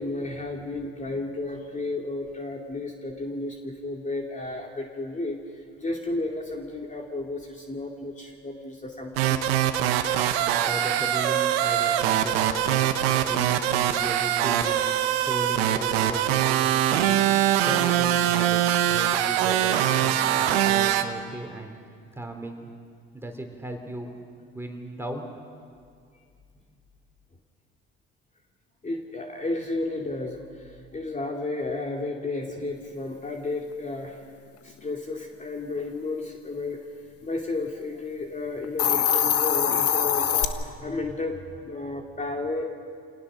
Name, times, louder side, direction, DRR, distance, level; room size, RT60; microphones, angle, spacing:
voice 1, 0.0-5.4 5.8-9.5 28.8-34.2 34.6-36.8 37.2-42.6, left 2 dB, 25° left, 1 dB, 2.6 m, -32 dB
sound 1, 9.2-21.0, right 11 dB, 85° right, 1.2 m, -23 dB
voice 2, 10.6-14.8 15.2-17.2 17.6-21.8 22.1-22.7 23.1-24.1 24.5-25.3, right 1 dB, 10° right, 3 dB, 3.7 m, -36 dB
Hiss, 38.6-40.5, left 9 dB, 50° left, 1.5 m, -23 dB
28.0 x 18.0 x 6.3 m, 2.2 s
hypercardioid pair, 65°, 30 cm